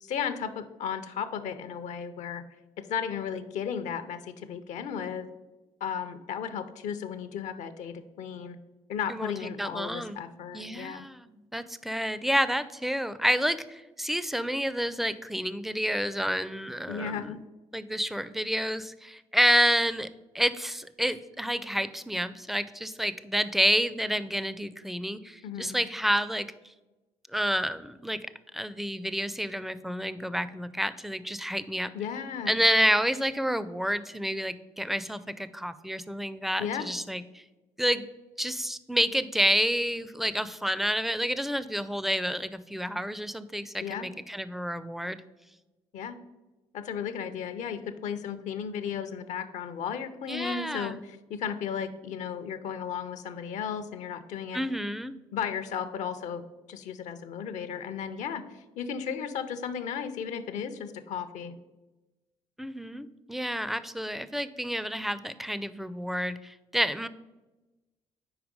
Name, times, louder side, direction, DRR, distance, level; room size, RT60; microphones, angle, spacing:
voice 1, 0.0-2.4 2.8-5.3 5.8-8.6 8.9-11.1 16.9-17.4 25.4-25.8 31.9-32.6 36.6-36.9 43.8-44.1 45.9-46.2 46.7-54.6 55.3-61.6, left 7 dB, 70° left, 11 dB, 0.5 m, -35 dB
voice 2, 9.6-10.2 10.5-17.3 17.7-20.1 20.3-26.5 27.3-28.2 28.5-31.9 32.5-37.4 37.8-38.1 38.4-45.2 50.3-51.0 54.5-55.1 62.6-67.1, equal, ahead, 14 dB, 0.4 m, -29 dB
4.8 x 4.6 x 5.1 m, 1.1 s
supercardioid pair, 55°, 13 cm